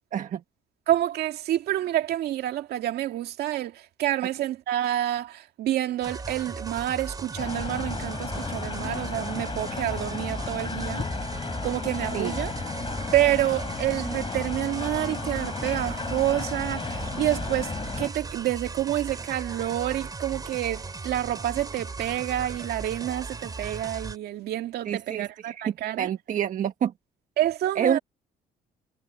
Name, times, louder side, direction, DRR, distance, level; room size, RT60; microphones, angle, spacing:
voice 1, 0.9-11.1 11.6-12.5 13.1-26.1 27.4-28.0, right 13 dB, 70° right, 2.1 m, -28 dB
sound 1, 6.0-24.2, right 4 dB, 20° right, 3.8 m, -37 dB
sound 2, 7.4-18.1, left 5 dB, 30° left, 5.0 m, -34 dB
voice 2, 24.8-26.9 27.7-28.0, right 9 dB, 50° right, 1.5 m, -28 dB
cardioid pair, 110°, 17 cm